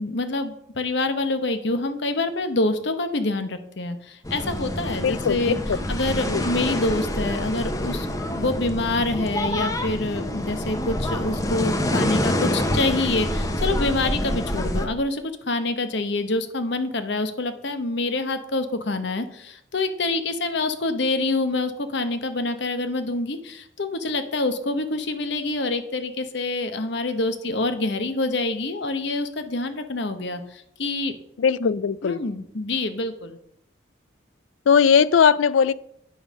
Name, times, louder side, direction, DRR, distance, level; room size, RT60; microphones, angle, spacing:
voice 1, 0.0-5.6 5.9-8.1 8.4-31.1 31.6-31.7 32.0-33.4, left 2 dB, 65° left, 9 dB, 0.9 m, -26 dB
sound 1, 4.2-14.9, left 1 dB, 15° left, 0.7 m, -26 dB
voice 2, 5.0-5.6 6.3-6.4 31.4-32.2 34.7-35.7, left 7 dB, 90° left, 19 dB, 0.4 m, -19 dB
8.9 x 5.2 x 6.1 m, 0.74 s
head